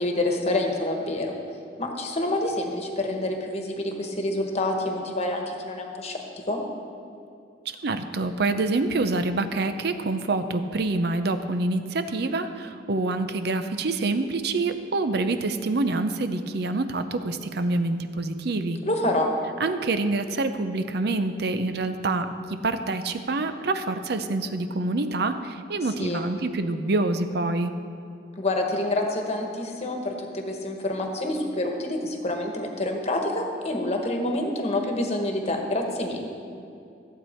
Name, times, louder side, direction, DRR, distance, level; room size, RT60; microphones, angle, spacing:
voice 1, 0.0-1.3 1.8-6.2 6.5-6.6 18.8-19.3 26.0-26.3 28.4-36.2, left 1 dB, 35° left, 2 dB, 1.3 m, -27 dB
voice 2, 7.8-18.8 19.6-27.7, right 2 dB, 60° right, 9 dB, 0.6 m, -26 dB
15.0 x 8.1 x 4.4 m, 2.6 s
head